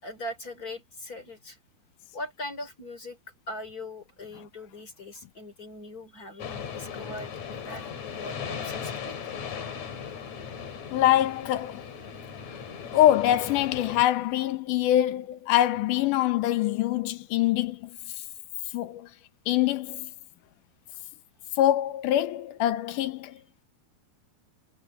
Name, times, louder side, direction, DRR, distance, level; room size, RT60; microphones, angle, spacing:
voice 1, 0.0-1.6 2.1-3.2 3.5-9.2, left 1 dB, 25° left, 3.6 m, -40 dB
sound 1, 6.4-14.0, left 7 dB, 50° left, 3.4 m, -38 dB
voice 2, 10.9-12.0 12.8-18.0 18.7-19.1 19.5-20.1 21.6-23.4, left 13 dB, 75° left, 2.0 m, -24 dB
omnidirectional pair, 4.4 m